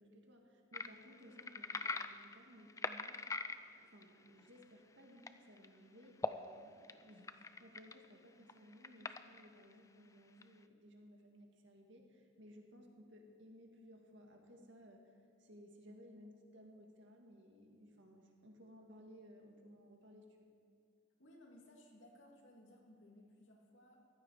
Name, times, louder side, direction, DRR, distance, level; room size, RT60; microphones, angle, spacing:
voice 1, 0.0-3.2 3.8-20.5, equal, 75° right, 2 dB, 2.0 m, -59 dB
sound 1, 0.7-4.6 5.2-5.3 5.6-5.7 6.0-6.3 6.8-8.1 8.5-9.7 10.4-10.5, left 3 dB, 15° left, 0.3 m, -42 dB
voice 2, 21.2-24.0, left 1 dB, 80° left, -1 dB, 2.5 m, -61 dB
15.0 x 12.5 x 5.0 m, 2.4 s
head